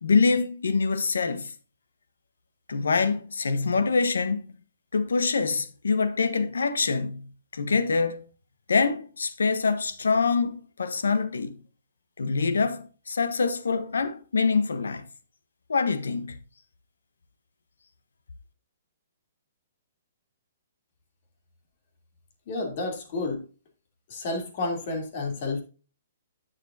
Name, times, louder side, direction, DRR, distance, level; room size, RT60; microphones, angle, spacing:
voice 1, 0.0-1.5 2.7-4.5 4.9-8.2 8.7-11.6 12.2-15.1 15.7-16.4, left 4 dB, 90° left, 0.9 m, -25 dB
voice 2, 22.5-23.4 24.1-25.6, left 3 dB, 50° left, 2.9 m, -30 dB
10.5 x 6.8 x 2.6 m
hypercardioid pair, 140°, 0 cm